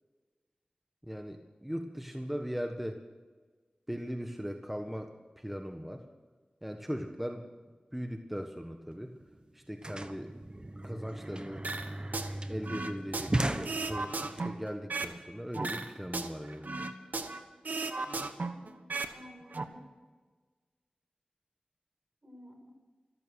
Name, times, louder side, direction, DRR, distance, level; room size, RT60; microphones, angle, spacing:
voice 1, 1.0-3.0 3.9-6.0 6.6-7.4 7.9-9.1 9.5-10.3 10.8-11.7 12.5-16.9, equal, 5° right, 4 dB, 1.3 m, -39 dB
sound 1, 8.9-9.0 9.2-14.4, right 1 dB, 35° right, 1.2 m, -36 dB
sound 2, 11.6-12.3 12.6-15.2 15.5-17.4 17.6-19.1 19.4-19.6, right 3 dB, 75° right, 1.2 m, -36 dB
voice 2, 18.5-19.8 22.2-22.7, left 1 dB, 50° right, 2 dB, 5.8 m, -53 dB
14.0 x 14.0 x 6.4 m, 1.4 s
wide cardioid pair, 50°, 3 cm